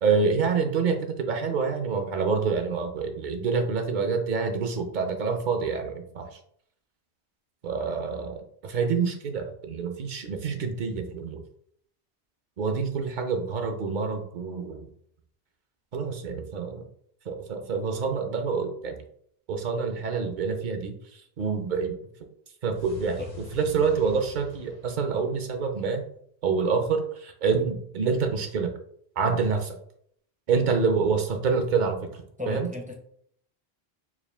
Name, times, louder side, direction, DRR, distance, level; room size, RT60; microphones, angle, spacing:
voice 1, 0.0-6.4 7.6-11.4 12.6-14.9 15.9-16.9 17.3-19.0 19.5-22.0 22.6-23.2 23.5-26.0 26.4-28.7 29.2-29.8 30.5-32.7, right 5 dB, 55° right, 5 dB, 0.6 m, -27 dB
sound 1, 22.7-25.8, left 3 dB, 75° left, 1.6 m, -44 dB
voice 2, 32.4-32.9, left 2 dB, 10° right, 1 dB, 0.4 m, -34 dB
4.7 x 2.3 x 3.4 m, 0.66 s
omnidirectional pair, 1.1 m